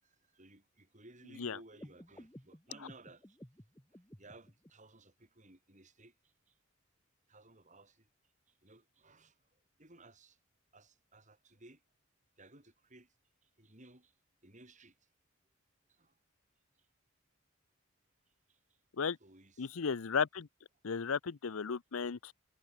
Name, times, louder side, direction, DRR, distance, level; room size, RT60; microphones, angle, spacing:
voice 1, 0.0-3.4 3.9-6.6 7.3-8.1 8.5-9.5 9.8-10.4 10.7-11.8 12.4-13.1 13.4-14.2 14.4-15.0 15.9-16.1 18.5-18.6 19.2-19.7, right 2 dB, 35° right, 7.9 m, -59 dB
sound 1, 1.7-4.7, equal, 15° left, 2.6 m, -55 dB
voice 2, 19.6-20.5 20.8-22.3, left 6 dB, 85° left, 0.7 m, -34 dB
head